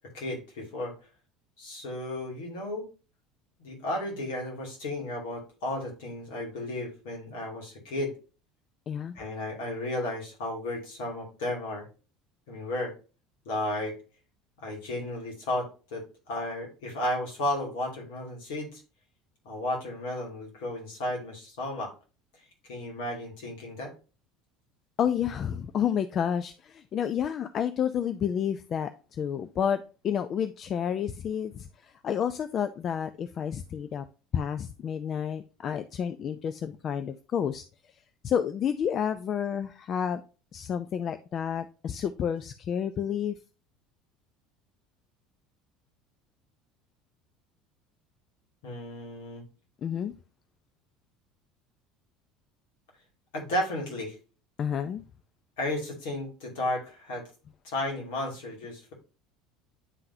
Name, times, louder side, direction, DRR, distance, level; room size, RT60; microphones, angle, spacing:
voice 1, 0.1-1.0 1.6-2.9 3.6-8.2 9.1-11.9 12.5-12.9 13.4-14.0 14.6-18.8 19.4-21.9 22.3-23.9 48.6-49.4 53.3-54.2 55.6-57.3 57.6-58.9, left 1 dB, 70° left, 2.4 m, -33 dB
voice 2, 8.9-9.2 25.0-34.0 34.3-37.6 38.2-40.2 40.5-43.4 49.8-50.1 54.6-55.0, left 8 dB, 45° left, 0.4 m, -30 dB
9.8 x 3.8 x 2.7 m
hypercardioid pair, 70°, 0 cm